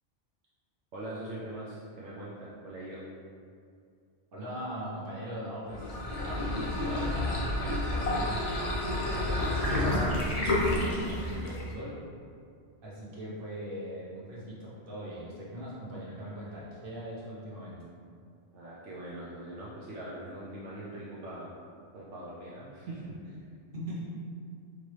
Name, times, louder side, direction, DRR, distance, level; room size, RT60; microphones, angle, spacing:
voice 1, 0.9-3.0 18.5-21.5 21.9-23.4, right 1 dB, 75° right, -7 dB, 1.0 m, -42 dB
voice 2, 4.3-12.0 12.8-17.8 23.7-24.1, equal, 50° right, -7 dB, 1.2 m, -41 dB
sound 1, 5.7-11.7, left 1 dB, 40° left, 0.6 m, -30 dB
4.7 x 2.7 x 3.2 m, 2.3 s
omnidirectional pair, 1.3 m